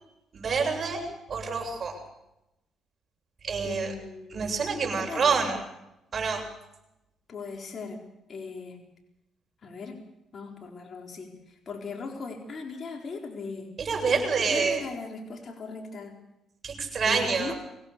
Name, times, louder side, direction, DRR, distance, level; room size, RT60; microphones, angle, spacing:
voice 1, 0.3-1.9 3.4-3.9 4.3-5.6 6.1-6.4 13.8-14.8 16.6-17.5, right 5 dB, 45° right, 2 dB, 7.6 m, -27 dB
voice 2, 3.6-4.6 4.9-5.4 7.3-8.0 8.3-8.8 9.6-10.0 10.3-13.7 14.4-16.1 17.0-17.5, left 4 dB, 45° left, 2 dB, 4.4 m, -38 dB
24.5 x 17.5 x 6.9 m, 0.89 s
cardioid pair, 85°, 0 cm